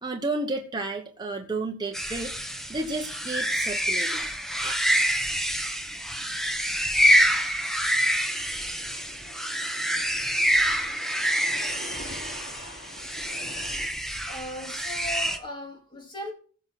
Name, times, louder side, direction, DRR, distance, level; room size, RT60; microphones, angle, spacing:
voice 1, 0.0-2.3 2.7-4.3 4.6-4.7, right 2 dB, 20° right, 1.1 m, -32 dB
sound 1, 1.9-15.4, equal, ahead, 1.2 m, -26 dB
sound 2, 8.3-13.9, left 1 dB, 65° left, 4.8 m, -44 dB
voice 2, 14.3-16.3, left 1 dB, 20° left, 2.4 m, -37 dB
16.0 x 6.2 x 5.9 m
head